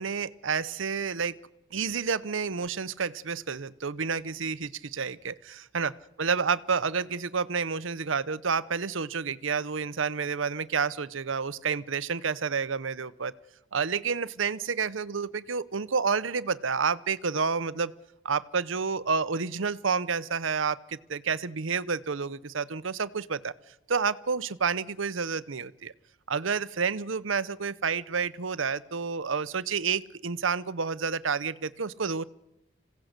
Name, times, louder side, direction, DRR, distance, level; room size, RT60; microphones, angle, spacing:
voice 1, 0.0-1.4 1.7-13.3 13.7-17.9 18.2-23.5 23.9-25.9 26.3-32.2, right 5 dB, 80° right, 17 dB, 0.8 m, -29 dB
27.0 x 17.0 x 6.7 m, 0.87 s
head